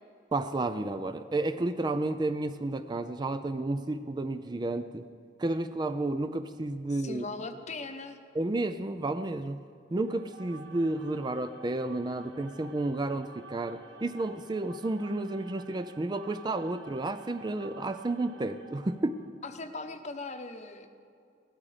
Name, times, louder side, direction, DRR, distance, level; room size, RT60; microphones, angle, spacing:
voice 1, 0.3-5.1 5.4-7.2 8.3-9.6 9.9-19.2, right 2 dB, 25° right, 10 dB, 0.4 m, -31 dB
voice 2, 6.9-8.2 19.4-20.9, left 3 dB, 40° left, 8 dB, 0.9 m, -39 dB
sound 1, 9.9-19.4, right 3 dB, 75° right, 1.1 m, -51 dB
17.0 x 12.5 x 4.9 m, 2.4 s
head